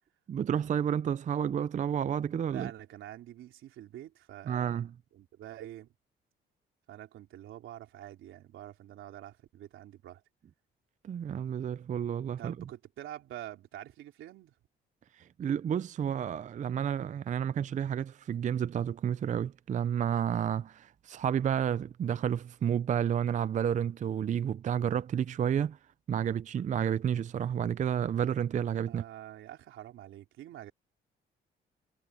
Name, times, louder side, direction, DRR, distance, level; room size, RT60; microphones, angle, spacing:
voice 1, 0.3-2.7 4.5-4.9 11.0-12.5 15.2-25.8 26.1-29.0, right 8 dB, 40° right, 0.4 m, -30 dB
voice 2, 2.5-4.8 5.1-5.9 6.9-10.2 12.4-14.5 28.9-30.7, right 13 dB, 80° right, 3.6 m, -46 dB
cardioid pair, 90°, 20 cm